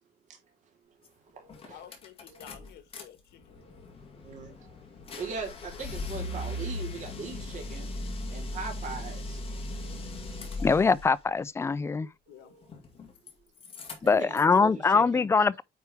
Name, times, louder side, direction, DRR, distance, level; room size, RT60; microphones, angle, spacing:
voice 1, 0.8-1.9 2.3-2.6 3.5-4.7 5.1-7.9 8.3-9.4 9.7-10.9 12.3-12.7 14.0-15.3, right 5 dB, 50° right, 3.6 m, -42 dB
sound 1, 1.1-1.2 1.5-3.0 3.4-11.1 12.6-13.3 13.6-14.6, left 2 dB, 35° left, 2.1 m, -38 dB
voice 2, 1.7-3.6 12.3-12.6, left 11 dB, 85° left, 1.5 m, -51 dB
voice 3, 10.6-12.1 14.0-15.6, left 4 dB, 15° left, 0.4 m, -23 dB
9.3 x 4.6 x 3.5 m
cardioid pair, 155°, 17 cm